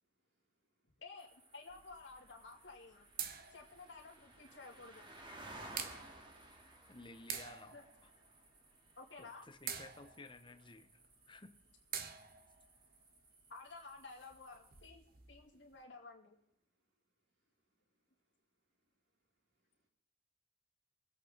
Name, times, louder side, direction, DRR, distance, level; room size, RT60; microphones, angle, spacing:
voice 1, 0.0-1.0 8.7-8.8 11.2-11.3 12.0-13.5 15.5-15.7 16.6-18.1 18.6-19.9, right 1 dB, 75° right, 0 dB, 3.9 m, -88 dB
voice 2, 1.0-3.1 3.5-5.0 7.7-7.8 9.0-9.5 13.5-15.0 15.3-16.3, left 3 dB, 80° left, -2 dB, 2.8 m, -53 dB
sound 1, 1.2-14.9, right 2 dB, 25° right, 2.1 m, -58 dB
sound 2, 1.7-15.8, right 8 dB, 55° right, 1.1 m, -50 dB
voice 3, 6.9-7.8 9.2-11.0 11.3-11.5, left 3 dB, 25° left, 10 dB, 0.9 m, -54 dB
23.0 x 8.4 x 3.9 m, 0.77 s
head